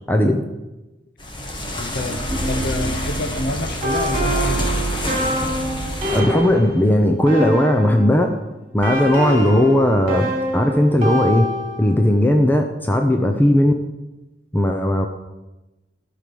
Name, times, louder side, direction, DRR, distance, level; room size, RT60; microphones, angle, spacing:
voice 1, 0.1-0.4 6.1-8.3 8.7-10.3 10.5-11.5 11.8-13.7 14.5-15.1, left 1 dB, 10° left, 4 dB, 0.6 m, -17 dB
sound 1, 1.2-6.2, left 1 dB, 25° left, 1.5 m, -28 dB
voice 2, 1.8-4.7, left 1 dB, 60° left, 7 dB, 1.0 m, -27 dB
sound 2, 2.3-8.2 8.8-12.0, equal, 35° right, 3.4 m, -25 dB
15.0 x 5.0 x 7.0 m, 1.1 s
head